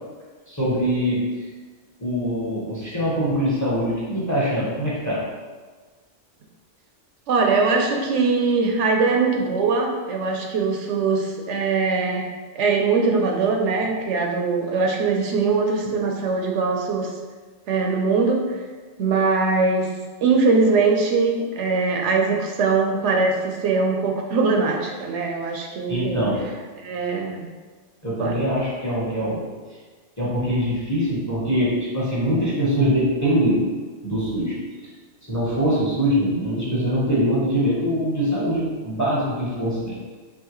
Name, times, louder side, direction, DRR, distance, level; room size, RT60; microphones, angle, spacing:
voice 1, 0.5-1.2 2.0-5.2 13.8-13.9 25.9-26.4 28.0-29.5 30.2-33.7 34.0-34.5 35.2-40.0, equal, 15° left, -7 dB, 0.9 m, -23 dB
voice 2, 7.3-12.3 12.5-17.1 17.7-18.6 19.0-19.9 20.2-26.2 26.8-27.4 28.2-28.4, right 4 dB, 75° right, 1 dB, 0.9 m, -21 dB
4.6 x 2.9 x 3.0 m, 1.4 s
omnidirectional pair, 1.2 m